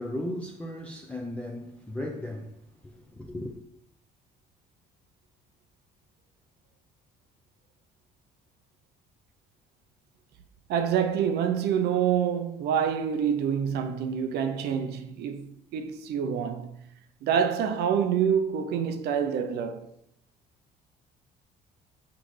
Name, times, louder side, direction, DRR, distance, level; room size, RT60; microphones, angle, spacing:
voice 1, 0.0-2.5 2.8-3.5, left 1 dB, 10° left, 0.6 m, -36 dB
voice 2, 10.7-16.8 17.2-19.9, right 8 dB, 75° right, 0.6 m, -27 dB
5.9 x 5.0 x 3.2 m
cardioid pair, 110°, 17 cm